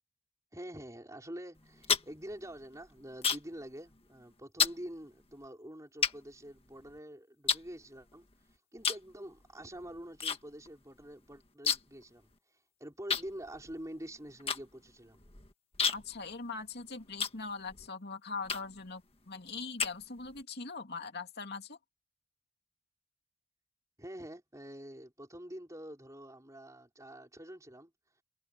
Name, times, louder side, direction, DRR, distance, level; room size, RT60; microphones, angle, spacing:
voice 1, 0.5-8.3 8.7-12.3 12.8-15.2 24.0-27.9, right 1 dB, 15° right, 5.0 m, -46 dB
sound 1, 1.6-3.6 3.9-4.2 4.6-4.8 5.4-5.5 6.0-7.0 7.5-8.3 8.8-9.1 9.4-10.4 10.7-10.8 11.0-12.0 12.3-12.4 13.1-17.9 18.4-18.9 19.4-20.4, left 6 dB, 25° left, 1.7 m, -33 dB
voice 2, 15.9-21.8, left 4 dB, 45° left, 2.8 m, -41 dB
head